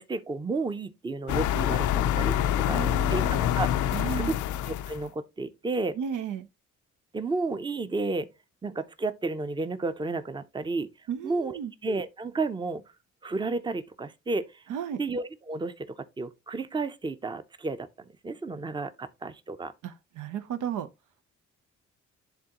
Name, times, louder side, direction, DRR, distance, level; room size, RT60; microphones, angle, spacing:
voice 1, 0.0-2.4 2.6-4.4 4.7-6.0 7.1-8.3 8.6-10.9 11.2-12.8 13.2-14.6 15.0-15.9 16.2-19.7, right 3 dB, 15° right, 0.6 m, -32 dB
sound 1, 1.3-5.1, left 11 dB, 75° left, 0.5 m, -26 dB
voice 2, 2.7-3.4 3.9-4.3 6.0-6.5 11.1-11.7 14.7-15.0 19.8-20.9, right 8 dB, 80° right, 0.7 m, -34 dB
10.5 x 3.7 x 2.9 m
cardioid pair, 90°, 30 cm